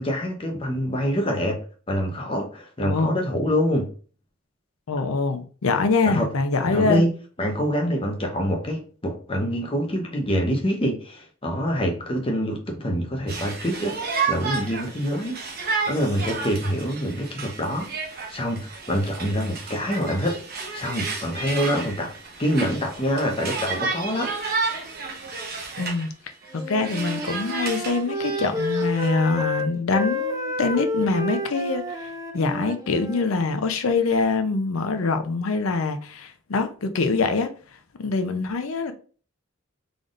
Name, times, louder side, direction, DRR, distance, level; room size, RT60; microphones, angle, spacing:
voice 1, 0.0-1.6 1.9-3.9 6.0-6.3 6.6-7.1 7.4-14.0 14.3-15.4 15.9-17.9 18.3-20.4 20.7-22.1 22.4-24.3, equal, 25° left, 0.8 m, -25 dB
voice 2, 2.8-3.2 4.9-7.1 25.8-26.1 26.5-32.1 32.3-37.5 38.0-38.9, left 3 dB, 90° left, 0.6 m, -24 dB
Conversation, 13.3-26.1 26.4-29.1, right 4 dB, 50° right, 0.9 m, -32 dB
Wind instrument woodwind instrument, 26.5-33.3, left 1 dB, 15° right, 0.4 m, -30 dB
3.9 x 3.5 x 2.4 m
head